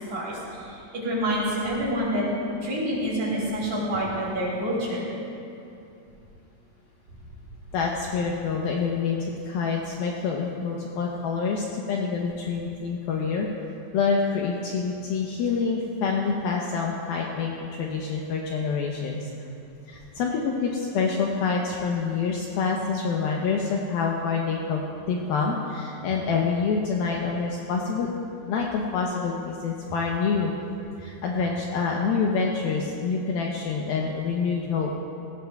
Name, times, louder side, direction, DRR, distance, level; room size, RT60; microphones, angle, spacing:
voice 1, 0.0-5.0, equal, 45° right, -6 dB, 4.4 m, -27 dB
voice 2, 7.7-13.5 13.9-19.5 19.9-28.1 28.5-30.5 31.0-34.9, left 5 dB, 75° left, -1 dB, 2.3 m, -27 dB
19.0 x 17.0 x 2.3 m, 2.7 s
omnidirectional pair, 5.1 m